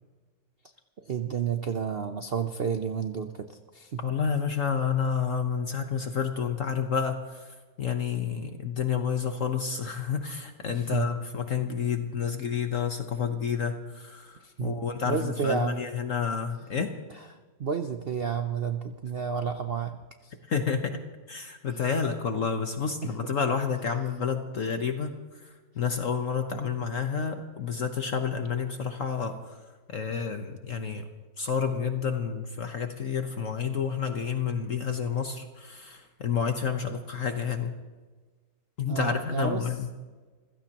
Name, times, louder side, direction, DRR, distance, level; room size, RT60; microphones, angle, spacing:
voice 1, 1.0-4.0 10.7-11.1 14.4-14.8 15.0-15.8 17.6-20.0 20.2-20.3 23.0-23.1 38.9-39.7, right 7 dB, 65° right, 7 dB, 0.6 m, -31 dB
voice 2, 4.0-16.9 20.5-29.6 29.9-31.0 31.4-37.7 38.8-39.9, left 6 dB, 50° left, 6 dB, 1.2 m, -30 dB
26.5 x 16.0 x 2.9 m, 1.3 s
omnidirectional pair, 1.9 m